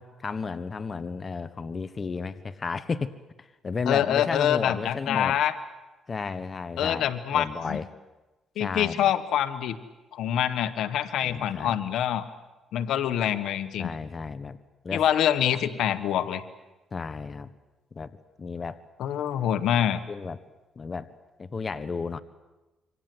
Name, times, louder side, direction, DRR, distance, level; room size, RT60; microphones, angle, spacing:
voice 1, 0.0-3.1 3.4-5.4 6.1-7.8 8.6-9.1 11.2-11.8 13.8-14.6 14.8-15.0 16.9-17.5 17.9-18.8 20.1-20.4 20.7-21.1 21.4-22.2, left 4 dB, 35° left, 12 dB, 1.3 m, -33 dB
voice 2, 3.9-5.5 6.8-7.8 8.6-9.8 10.1-12.2 12.7-13.9 14.9-16.4 19.0-20.0, left 10 dB, 80° left, 12 dB, 1.5 m, -25 dB
27.0 x 25.0 x 8.0 m, 1.1 s
cardioid pair, 90°, 0 cm